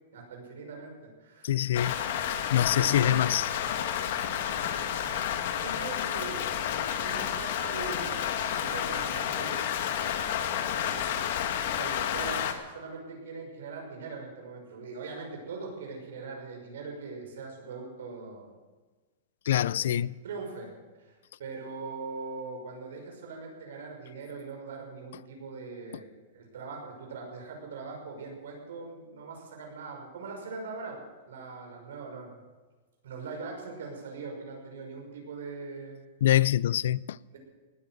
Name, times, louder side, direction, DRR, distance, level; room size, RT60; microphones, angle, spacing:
voice 1, 0.1-2.0 2.8-3.2 4.5-9.7 10.5-18.5 19.5-20.7 21.0-31.0 31.3-32.4 33.0-36.0 37.3-37.4, right 4 dB, 85° right, 5.9 m, -41 dB
voice 2, 1.4-2.0 2.3-3.5 19.5-20.1 36.2-37.2, left 12 dB, 70° left, 0.4 m, -25 dB
Rain, 1.7-12.5, left 9 dB, 55° left, 1.6 m, -30 dB
18.5 x 9.2 x 7.9 m
supercardioid pair, 170°, 0 cm